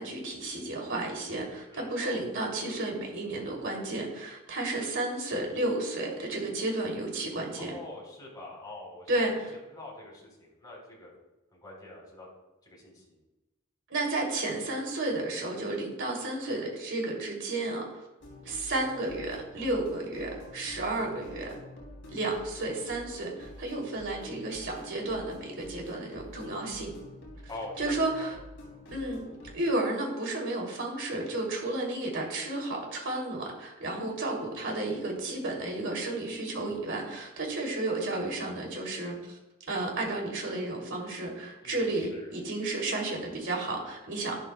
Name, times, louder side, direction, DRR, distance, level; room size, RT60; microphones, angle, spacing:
voice 1, 0.0-7.8 9.1-9.5 13.9-18.1 18.4-21.5 22.1-26.9 27.8-28.3 28.9-29.2 29.5-39.4 39.7-44.4, right 2 dB, 55° right, -1 dB, 2.8 m, -32 dB
voice 2, 1.7-2.2 7.6-9.1 9.7-11.1 11.5-12.3 12.6-13.2 27.5-28.3 41.6-42.3, left 2 dB, 20° left, -3 dB, 3.6 m, -45 dB
sound 1, 18.2-29.5, left 1 dB, 55° left, 3.1 m, -48 dB
11.5 x 11.5 x 2.3 m, 1.0 s
head